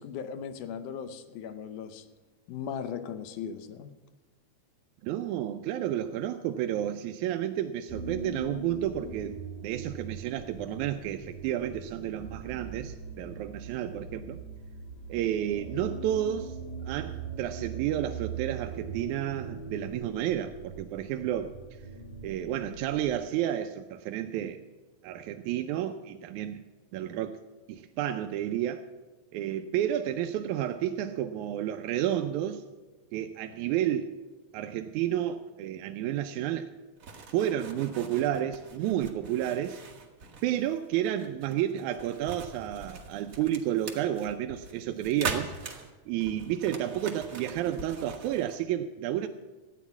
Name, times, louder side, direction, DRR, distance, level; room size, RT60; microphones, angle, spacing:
voice 1, 0.0-2.1 2.5-3.9, left 7 dB, 85° left, 10 dB, 2.3 m, -38 dB
voice 2, 5.0-9.4 9.6-14.4 15.1-16.6 16.9-21.5 22.2-24.6 25.0-26.6 26.9-27.4 27.7-28.9 29.3-32.6 33.1-34.1 34.5-36.7 37.3-39.8 40.4-45.5 46.1-49.3, right 11 dB, 80° right, 6 dB, 1.9 m, -31 dB
sound 1, 7.9-23.2, right 5 dB, 10° left, 2.4 m, -41 dB
sound 2, 37.0-48.6, right 4 dB, 55° right, 0.9 m, -42 dB
14.0 x 9.2 x 7.2 m, 1.2 s
omnidirectional pair, 3.5 m